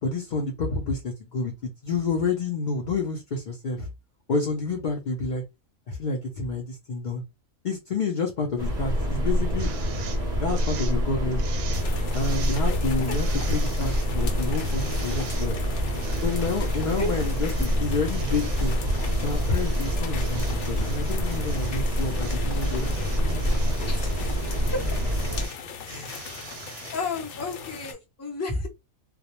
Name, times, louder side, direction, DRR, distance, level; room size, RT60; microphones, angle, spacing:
voice 1, 0.0-3.9 4.3-5.4 5.9-7.2 7.6-9.7 10.4-11.4 12.1-15.6 16.2-18.8 19.2-23.9 25.9-26.1, left 3 dB, 85° left, 0.4 m, -29 dB
sound 1, 8.6-25.5, equal, 40° right, 0.6 m, -26 dB
sound 2, 9.6-10.2 10.5-11.0 11.3-11.9 12.1-12.6 13.1-14.1 14.5-15.5 15.9-17.8 18.1-25.6 25.9-26.9, right 7 dB, 70° right, 0.8 m, -44 dB
sound 3, 11.7-27.9, left 6 dB, 65° left, 0.8 m, -40 dB
voice 2, 23.9-24.3 24.7-25.0 25.8-26.3 26.9-28.7, left 3 dB, 20° left, 0.4 m, -32 dB
2.3 x 2.0 x 2.8 m
omnidirectional pair, 1.5 m